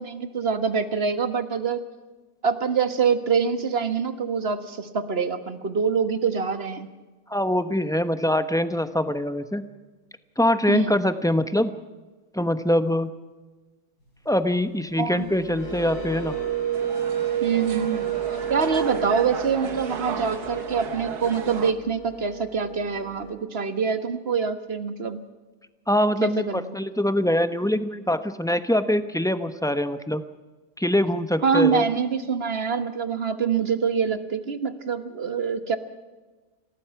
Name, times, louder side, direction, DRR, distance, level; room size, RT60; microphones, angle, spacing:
voice 1, 0.0-1.8 2.4-6.9 10.7-10.9 15.0-15.3 17.4-25.2 26.2-26.7 31.4-35.8, right 6 dB, 40° right, 10 dB, 1.6 m, -25 dB
voice 2, 7.3-9.6 10.4-11.7 12.3-13.1 14.3-16.4 25.9-30.2 30.8-31.9, left 1 dB, 5° left, 10 dB, 0.7 m, -23 dB
sound 1, 14.9-23.3, right 8 dB, 90° left, 6.2 m, -31 dB
sound 2, 16.7-21.7, right 6 dB, 85° right, 2.0 m, -35 dB
27.5 x 17.0 x 6.0 m, 1.2 s
omnidirectional pair, 1.6 m